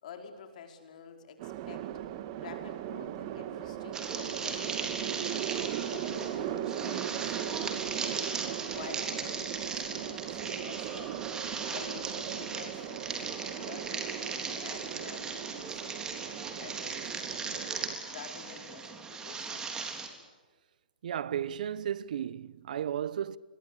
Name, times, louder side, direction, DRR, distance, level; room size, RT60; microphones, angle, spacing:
voice 1, 0.0-1.9 2.4-5.3 5.8-11.1 11.5-14.1 14.5-19.9, left 6 dB, 55° left, 5.1 m, -49 dB
sound 1, 1.4-18.0, right 11 dB, 40° right, 1.8 m, -38 dB
sound 2, 3.9-20.1, right 5 dB, 15° right, 3.6 m, -38 dB
voice 2, 21.0-23.4, right 9 dB, 60° right, 0.9 m, -34 dB
30.0 x 23.0 x 8.3 m
hypercardioid pair, 135°, 5 cm